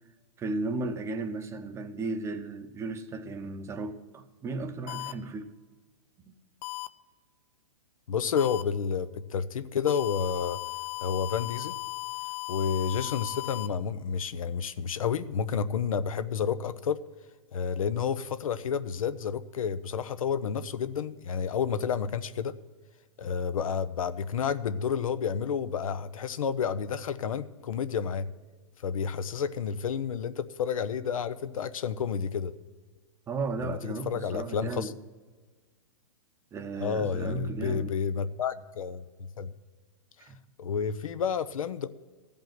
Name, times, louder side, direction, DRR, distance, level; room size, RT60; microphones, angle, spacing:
voice 1, 0.4-5.5 6.3-6.4 33.3-35.0 36.5-37.9 40.2-40.4, right 3 dB, 15° right, 0.8 m, -35 dB
sound 1, 4.9-5.1 6.6-6.9 8.4-8.6 9.9-13.7, left 20 dB, 35° left, 0.5 m, -36 dB
voice 2, 8.1-10.6 11.0-11.7 12.5-17.0 17.5-22.6 23.2-28.3 28.8-32.5 33.6-34.9 36.8-39.0 39.4-39.5 40.6-41.9, left 7 dB, 75° left, 0.7 m, -30 dB
14.5 x 5.4 x 9.1 m
hypercardioid pair, 135°, 18 cm